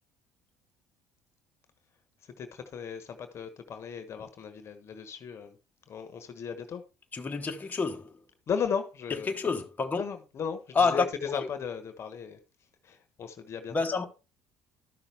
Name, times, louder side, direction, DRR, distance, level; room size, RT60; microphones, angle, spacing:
voice 1, 2.2-5.6 5.9-6.8 8.5-9.4 9.9-12.4 12.8-13.7, left 7 dB, 50° left, 1.3 m, -36 dB
voice 2, 7.1-8.1 9.3-10.0 10.7-11.4 13.7-14.0, left 4 dB, 30° left, 1.4 m, -28 dB
12.5 x 5.8 x 3.5 m
supercardioid pair, 70°, 6 cm